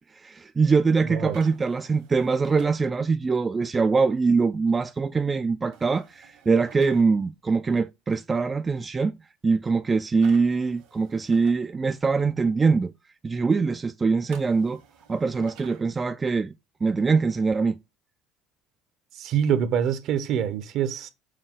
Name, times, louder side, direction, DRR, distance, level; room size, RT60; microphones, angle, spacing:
voice 1, 0.2-9.1 9.4-12.9 13.2-14.8 15.1-16.5 16.8-17.8, right 4 dB, 20° right, 0.3 m, -23 dB
voice 2, 1.0-1.4 19.1-21.1, right 8 dB, 55° right, 0.8 m, -25 dB
sound 1, 1.3-2.7 5.7-7.0 10.2-11.6 14.3-15.8, right 8 dB, 80° right, 1.8 m, -51 dB
6.4 x 2.2 x 3.7 m
cardioid pair, 120°, 0 cm